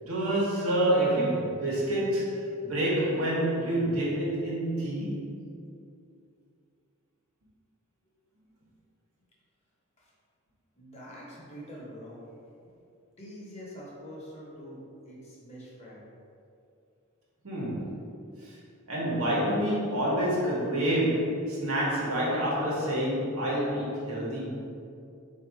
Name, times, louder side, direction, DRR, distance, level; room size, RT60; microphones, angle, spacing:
voice 1, 0.0-5.3 17.4-18.0 18.4-18.6 18.9-24.6, right 1 dB, 90° right, -5 dB, 1.2 m, -28 dB
voice 2, 10.8-12.2 12.6-12.7 13.2-16.0, equal, 30° left, -5 dB, 0.9 m, -45 dB
4.0 x 2.7 x 4.6 m, 2.5 s
head